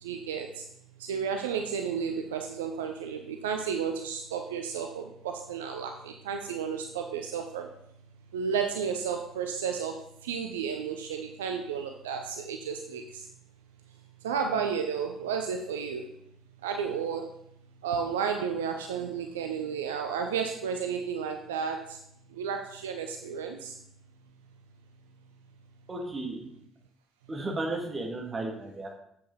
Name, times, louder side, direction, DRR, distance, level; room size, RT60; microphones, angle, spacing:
voice 1, 0.0-0.6 1.0-7.7 8.3-13.2 14.2-16.1 16.6-17.3 17.8-22.0 22.4-23.7, right 6 dB, 70° right, 5 dB, 0.5 m, -32 dB
voice 2, 25.9-26.4 27.3-28.9, right 2 dB, 25° right, 1 dB, 2.1 m, -34 dB
8.5 x 7.7 x 4.1 m, 0.72 s
figure-of-eight pair, 50°, 0 cm